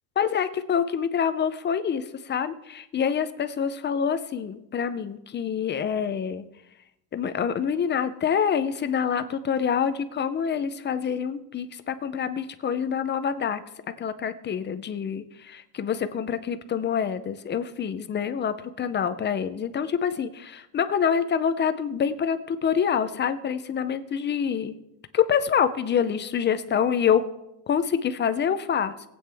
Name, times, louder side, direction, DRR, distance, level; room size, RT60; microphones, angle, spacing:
voice 1, 0.2-6.4 7.1-13.6 14.0-24.8 25.1-27.2 27.7-28.9, left 7 dB, 25° left, 11 dB, 0.4 m, -26 dB
20.5 x 8.6 x 3.4 m, 0.84 s
cardioid pair, 175°, 44 cm